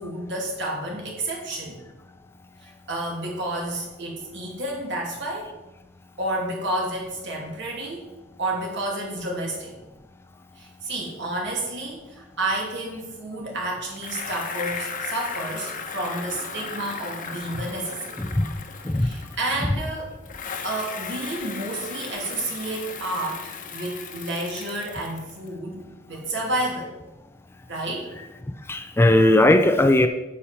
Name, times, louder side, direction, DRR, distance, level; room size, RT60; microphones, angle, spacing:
voice 1, 0.0-1.8 2.6-5.5 6.2-8.1 8.4-9.8 10.6-18.3 19.0-20.2 20.6-27.0 27.7-28.1, right 1 dB, 65° right, -2 dB, 2.8 m, -30 dB
Bicycle, 14.0-19.8 20.2-25.5, left 5 dB, 45° left, 1.0 m, -36 dB
voice 2, 28.7-30.1, left 1 dB, 10° left, 7 dB, 0.4 m, -17 dB
9.3 x 7.1 x 4.4 m, 0.99 s
head